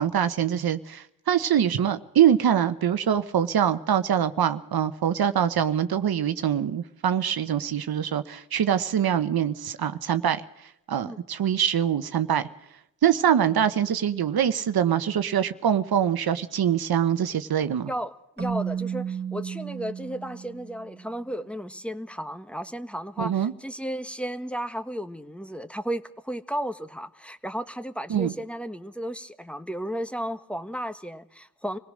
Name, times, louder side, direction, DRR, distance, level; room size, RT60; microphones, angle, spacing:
voice 1, 0.0-10.4 10.9-12.5 13.0-17.9 23.2-23.5 28.1-28.3, right 9 dB, 75° right, 1.1 m, -24 dB
voice 2, 17.9-31.8, equal, 5° left, 1.5 m, -34 dB
Keyboard (musical), 18.4-21.1, right 7 dB, 30° right, 3.0 m, -33 dB
26.0 x 17.5 x 6.4 m
cardioid pair, 50°, 37 cm